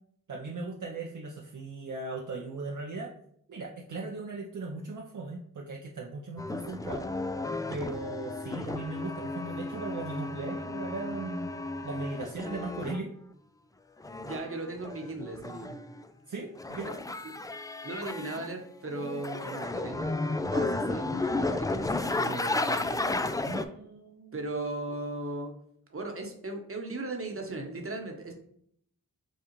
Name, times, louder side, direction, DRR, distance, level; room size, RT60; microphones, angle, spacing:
voice 1, 0.3-3.1 3.5-7.1 7.7-11.5 11.8-13.1 16.3-17.0 23.4-24.4, right 3 dB, 55° right, -1 dB, 0.7 m, -38 dB
sound 1, 6.4-13.0 14.0-16.0 16.6-18.5 18.9-23.6, left 2 dB, 10° left, 0.3 m, -33 dB
voice 2, 14.2-15.8 17.2-17.3 17.8-23.2 24.3-25.5 25.9-28.3, right 2 dB, 35° right, 2 dB, 1.1 m, -37 dB
6.6 x 2.4 x 3.0 m, 0.66 s
cardioid pair, 50°, 37 cm